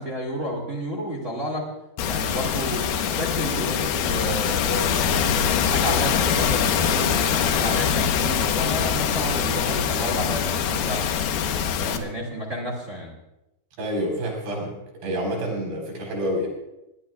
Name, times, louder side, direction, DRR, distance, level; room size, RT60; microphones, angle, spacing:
voice 1, 0.0-1.7 2.0-11.4 11.8-13.1, equal, 25° right, 0 dB, 1.8 m, -31 dB
sound 1, 2.0-12.0, left 8 dB, 80° left, 2.9 m, -23 dB
voice 2, 13.8-16.5, equal, 90° right, -1 dB, 6.5 m, -28 dB
21.5 x 18.5 x 2.4 m, 0.93 s
omnidirectional pair, 4.5 m